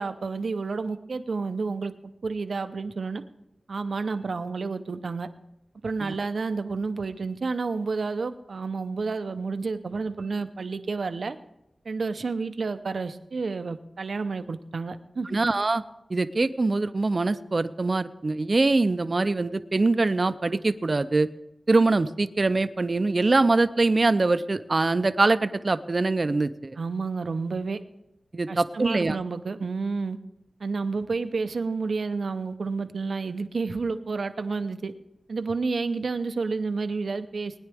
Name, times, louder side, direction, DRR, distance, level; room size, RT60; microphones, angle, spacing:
voice 1, 0.0-1.9 2.2-3.2 3.7-5.3 5.8-11.4 11.8-15.4 26.8-27.8 28.5-30.2 30.6-34.9 35.3-37.6, right 4 dB, 80° right, 10 dB, 0.7 m, -30 dB
voice 2, 15.3-15.8 16.1-21.3 21.7-26.8 28.3-29.2, right 3 dB, 45° right, 12 dB, 0.5 m, -23 dB
20.0 x 10.0 x 3.5 m, 0.85 s
wide cardioid pair, 90°, 0 cm